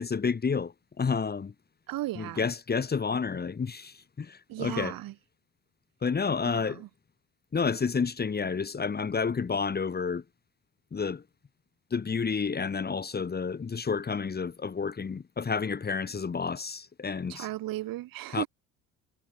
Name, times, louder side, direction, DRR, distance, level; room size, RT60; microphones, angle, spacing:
voice 1, 0.0-1.5 2.2-4.9 6.0-6.8 7.5-10.2 10.9-11.2 11.9-17.5 18.3-18.4, left 5 dB, 25° left, 1.6 m, -30 dB
voice 2, 1.9-2.5 4.5-5.1 6.4-6.9 17.3-18.5, right 16 dB, 65° right, 6.6 m, -35 dB
supercardioid pair, 75°, 36 cm